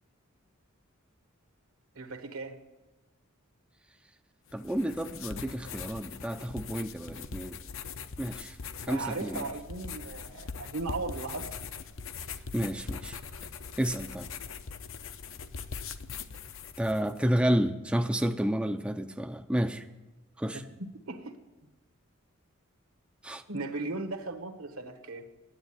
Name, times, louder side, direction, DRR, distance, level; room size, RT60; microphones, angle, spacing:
voice 1, 1.9-2.6 8.9-11.5 20.5-21.3 23.5-25.3, right 3 dB, 75° right, 5 dB, 1.4 m, -37 dB
sound 1, 4.5-17.2, left 5 dB, 65° left, 0.7 m, -41 dB
voice 2, 4.5-7.6 8.2-8.6 8.9-9.5 12.5-13.2 13.8-14.3 16.8-19.9 20.4-20.6 23.2-23.4, equal, 5° right, 6 dB, 0.4 m, -30 dB
10.5 x 8.5 x 9.6 m, 1.2 s
head